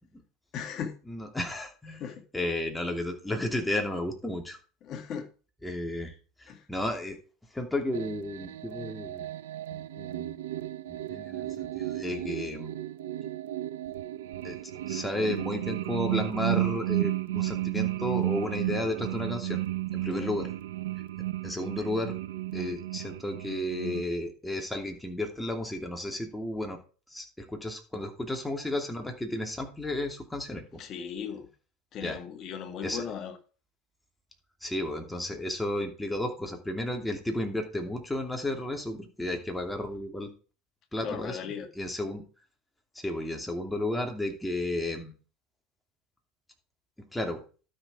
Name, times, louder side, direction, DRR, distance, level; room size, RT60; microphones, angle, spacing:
voice 1, 0.5-0.9 2.0-2.2 4.8-5.3 6.5-6.6 20.1-20.3 30.8-31.5 31.9-33.4 41.0-41.7, left 7 dB, 45° left, 2.0 m, -37 dB
voice 2, 1.1-2.0 2.3-4.6 5.6-6.1 6.4-7.2 7.5-9.3 9.7-10.4 10.9-12.7 14.4-14.6 14.9-19.6 19.9-20.5 21.4-22.1 22.5-26.8 27.1-30.8 32.0-32.2 32.8-33.0 34.6-40.3 40.9-42.2 42.9-45.1 47.0-47.4, left 1 dB, 5° left, 2.7 m, -33 dB
sound 1, 7.9-24.0, right 15 dB, 70° right, 0.7 m, -33 dB
12.0 x 6.4 x 4.9 m
hypercardioid pair, 75°, 0 cm